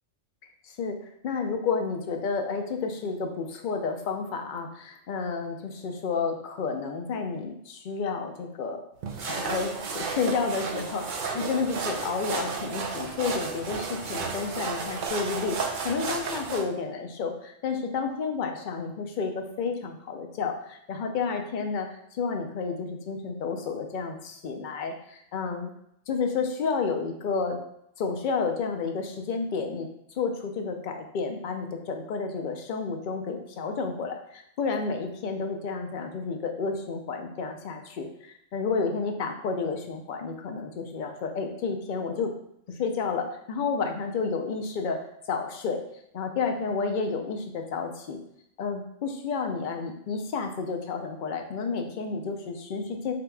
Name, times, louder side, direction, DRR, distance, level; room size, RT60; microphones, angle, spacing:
voice 1, 0.6-1.0 1.2-8.8 9.2-15.6 15.8-25.7 26.1-27.6 28.0-29.9 30.2-42.3 42.8-45.8 46.1-48.2 48.6-53.1, left 5 dB, 55° left, 4 dB, 0.6 m, -31 dB
sound 1, 9.0-16.6, right 5 dB, 60° right, 0.5 m, -33 dB
5.2 x 2.8 x 2.2 m, 0.74 s
omnidirectional pair, 1.2 m